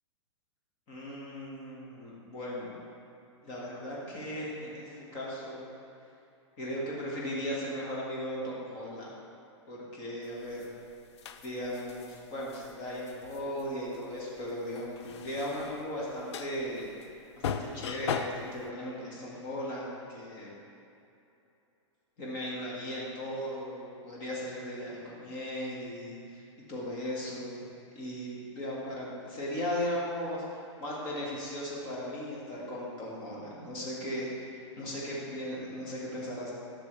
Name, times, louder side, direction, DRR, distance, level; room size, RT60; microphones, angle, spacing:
voice 1, 0.9-2.8 3.4-5.6 6.6-9.1 9.7-10.7 11.4-16.9 17.4-20.5 22.2-26.4 26.7-27.6 28.0-30.4 30.8-36.5, equal, 25° left, -5 dB, 1.8 m, -37 dB
sound 1, 10.4-18.6, left 7 dB, 60° left, 0.5 m, -39 dB
11.5 x 6.3 x 3.4 m, 2.7 s
hypercardioid pair, 170°, 16 cm